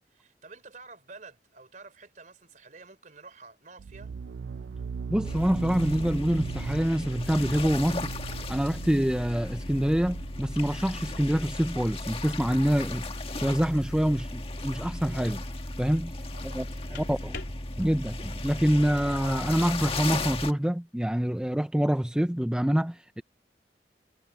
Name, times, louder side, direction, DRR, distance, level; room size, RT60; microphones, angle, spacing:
voice 1, 0.0-4.1 16.3-17.4, right 3 dB, 45° right, 3.5 m, -50 dB
sound 1, 3.8-11.4, right 5 dB, 80° right, 0.4 m, -39 dB
voice 2, 5.1-8.1 8.5-15.4 15.8-16.2 16.4-16.7 16.9-17.3 17.8-23.2, equal, 5° right, 0.4 m, -26 dB
sound 2, 5.2-20.5, left 2 dB, 35° left, 1.7 m, -36 dB
sound 3, 16.9-19.2, left 3 dB, 75° left, 3.6 m, -47 dB
head